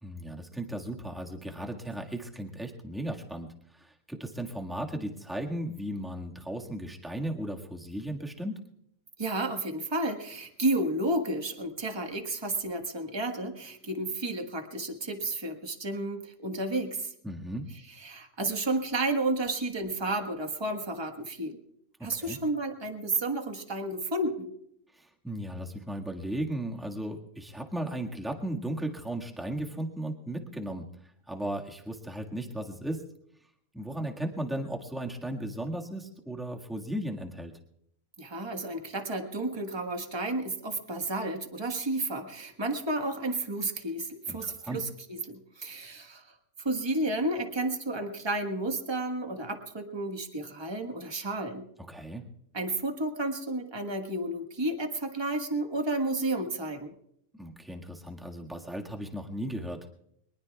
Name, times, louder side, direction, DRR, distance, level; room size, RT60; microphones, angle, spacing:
voice 1, 0.0-8.6 17.2-17.7 22.0-22.4 24.9-30.9 31.3-33.0 33.7-37.5 44.3-44.8 51.9-52.2 57.4-59.8, right 1 dB, ahead, 0 dB, 1.6 m, -36 dB
voice 2, 9.2-17.1 18.0-21.6 22.0-24.5 38.2-46.2 46.6-51.6 52.5-56.9, right 2 dB, 20° right, 4 dB, 1.4 m, -32 dB
23.5 x 20.5 x 2.3 m, 0.72 s
omnidirectional pair, 1.5 m